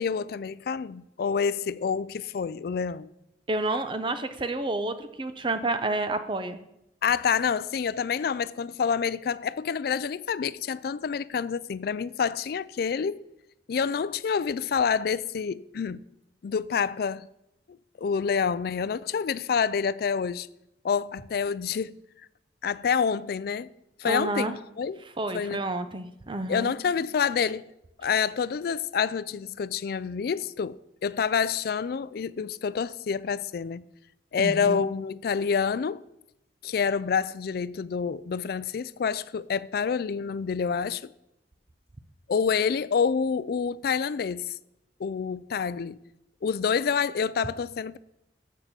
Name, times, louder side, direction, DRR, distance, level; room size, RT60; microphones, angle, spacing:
voice 1, 0.0-3.1 7.0-13.2 13.7-16.0 16.4-17.3 18.0-20.5 20.8-22.0 22.6-23.7 24.0-25.0 25.3-25.6 26.5-27.6 28.0-33.8 34.3-36.0 36.6-41.0 42.3-44.5 45.0-46.0 46.4-48.0, left 6 dB, 60° left, 0.3 m, -27 dB
voice 2, 3.5-6.6 24.0-24.5 25.2-26.7 34.4-34.8, right 2 dB, 30° right, 0.6 m, -29 dB
7.3 x 6.6 x 6.9 m
head